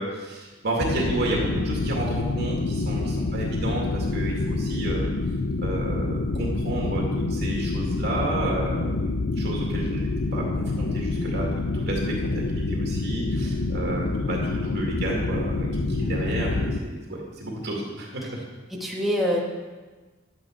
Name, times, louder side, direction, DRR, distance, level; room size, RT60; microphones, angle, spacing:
voice 1, 0.0-5.1 5.6-11.5 11.7-18.4, right 2 dB, 60° right, -3 dB, 2.1 m, -31 dB
sound 1, 0.8-16.8, left 3 dB, 85° left, 0.7 m, -27 dB
voice 2, 18.7-19.4, equal, ahead, -3 dB, 1.6 m, -27 dB
11.5 x 8.7 x 4.4 m, 1.3 s
head